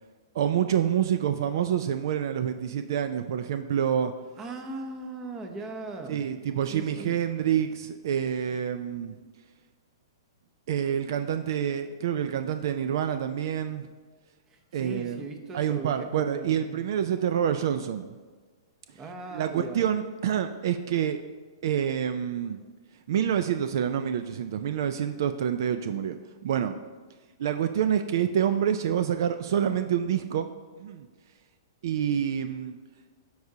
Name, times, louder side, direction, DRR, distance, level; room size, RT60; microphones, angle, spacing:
voice 1, 0.3-4.1 6.1-9.1 10.7-13.9 14.7-15.2 15.5-18.1 19.3-21.2 21.6-22.6 23.1-26.2 26.4-26.8 27.4-30.5 30.8-31.1 31.8-32.8, right 9 dB, 60° right, 9 dB, 0.4 m, -27 dB
voice 2, 4.4-6.3 6.7-7.2 14.5-16.9 18.9-19.8, right 2 dB, 20° right, 5 dB, 0.7 m, -39 dB
13.0 x 4.7 x 2.8 m, 1.4 s
hypercardioid pair, 150°, 2 cm